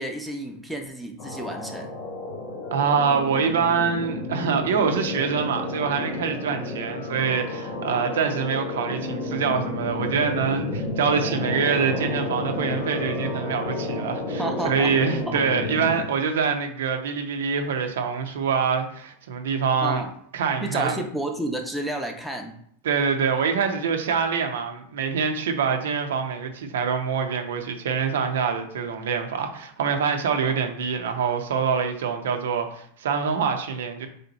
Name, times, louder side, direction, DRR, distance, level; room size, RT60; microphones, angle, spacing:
voice 1, 0.0-1.9 14.4-14.9 15.3-15.4 19.8-20.1 20.6-22.5 30.5-30.6, right 1 dB, ahead, 3 dB, 0.7 m, -31 dB
sound 1, 1.2-16.0, left 2 dB, 55° left, 1.0 m, -31 dB
voice 2, 2.7-20.0 20.3-21.0 22.8-34.1, right 6 dB, 85° right, 5 dB, 0.6 m, -25 dB
3.5 x 2.7 x 4.1 m, 0.65 s
hypercardioid pair, 115°, 0 cm